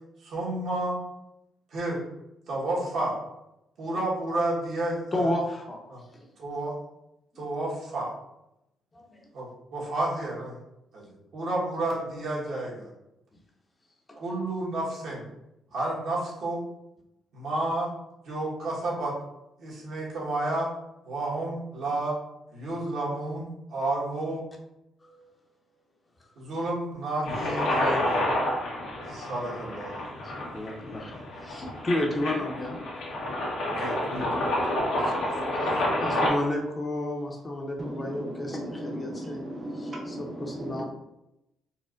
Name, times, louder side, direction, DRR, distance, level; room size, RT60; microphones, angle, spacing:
voice 1, 0.2-1.0 1.7-2.0 2.5-3.2 3.8-5.3 5.9-6.0 6.4-6.7 7.4-8.1 9.3-10.5 10.9-12.9 14.1-15.3 15.7-16.6 17.3-17.9 18.2-19.1 19.6-20.7 21.0-22.1 22.5-24.4 26.4-28.2 29.1-29.9 33.7-34.6, right 2 dB, 70° right, -5 dB, 1.3 m, -31 dB
voice 2, 5.1-5.8 6.1-6.3 8.9-9.3 25.0-25.4 30.2-32.8 34.9-35.3 35.6-39.4 39.7-40.8, left 1 dB, 25° left, 1 dB, 0.6 m, -32 dB
sound 1, 27.2-36.3, left 1 dB, 90° left, 1.0 m, -29 dB
voice 3, 37.8-38.5 38.9-40.8, right 1 dB, 35° right, -1 dB, 0.6 m, -36 dB
4.3 x 2.1 x 2.5 m, 0.87 s
cardioid pair, 90°, 0 cm